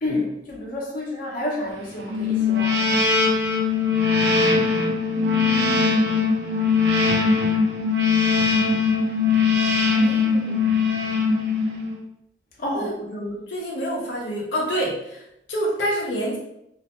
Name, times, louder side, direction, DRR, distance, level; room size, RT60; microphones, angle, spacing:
voice 1, 0.0-3.1 12.6-12.9, left 1 dB, 50° left, -3 dB, 0.7 m, -29 dB
sound 1, 2.1-12.0, left 4 dB, 65° right, 0.4 m, -21 dB
voice 2, 5.1-7.1 9.8-10.7 12.7-16.4, equal, 80° left, -3 dB, 0.6 m, -29 dB
2.4 x 2.0 x 2.9 m, 0.78 s
head